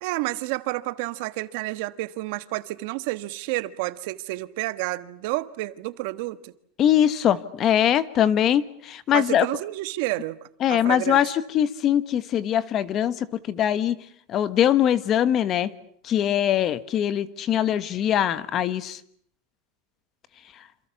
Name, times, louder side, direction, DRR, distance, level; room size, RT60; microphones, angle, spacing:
voice 1, 0.0-6.5 9.1-10.4 10.7-11.2, right 19 dB, 60° right, 1.4 m, -30 dB
voice 2, 6.8-9.5 10.6-14.0 14.3-15.7 16.0-19.0, left 10 dB, 30° left, 1.3 m, -22 dB
27.5 x 27.5 x 7.1 m
supercardioid pair, 165°, 0 cm